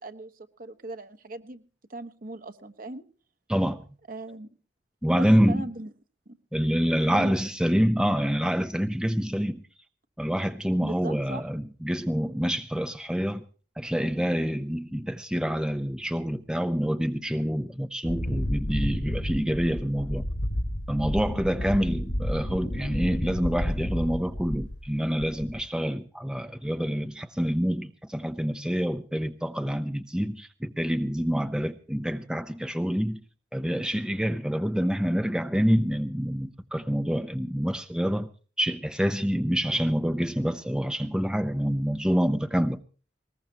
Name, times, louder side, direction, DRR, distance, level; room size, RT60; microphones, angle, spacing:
voice 1, 0.0-3.0 4.1-4.5 5.1-5.9 6.2-6.4 7.1-7.4 10.8-11.4 21.6-21.7, right 2 dB, 50° right, 1.5 m, -39 dB
voice 2, 3.5-3.8 5.0-5.7 6.5-9.6 10.2-13.4 13.8-20.3 20.9-33.2 33.5-38.3 38.6-42.8, equal, 5° right, 0.7 m, -27 dB
Wind, 18.0-24.9 25.2-25.7, equal, 75° left, 2.5 m, -31 dB
20.5 x 20.0 x 2.9 m
head